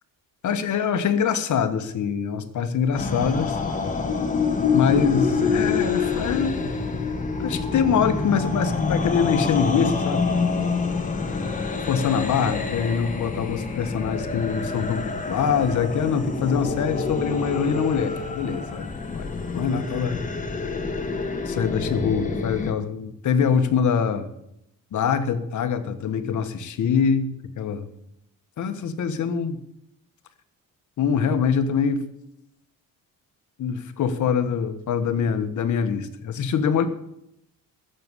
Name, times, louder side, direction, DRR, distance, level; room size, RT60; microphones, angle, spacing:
voice 1, 0.4-3.6 4.7-6.5 7.4-10.2 11.9-18.9 19.2-19.3 19.5-20.2 21.4-24.3 24.9-27.3 27.6-27.9 28.6-29.6 31.0-32.0 33.6-36.9, left 6 dB, 55° left, 9 dB, 1.4 m, -24 dB
sound 1, 2.9-22.7, left 4 dB, 20° left, 1.7 m, -27 dB
14.5 x 6.9 x 8.2 m, 0.79 s
cardioid pair, 140°, 34 cm